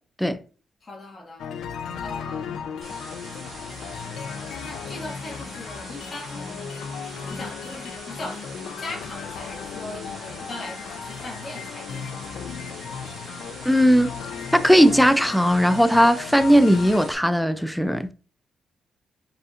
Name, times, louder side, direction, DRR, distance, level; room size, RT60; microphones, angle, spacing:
voice 1, 0.8-1.4 2.0-2.6 3.7-4.2 4.6-6.5 7.2-8.4 8.8-12.0, left 2 dB, 30° left, 1.8 m, -39 dB
sound 1, 1.4-17.1, left 7 dB, 80° left, 0.5 m, -36 dB
sound 2, 2.8-17.1, right 2 dB, 40° right, 1.7 m, -43 dB
voice 2, 13.7-14.1 14.5-18.1, equal, ahead, 0.3 m, -18 dB
5.1 x 4.2 x 2.4 m
cardioid pair, 150°, 0 cm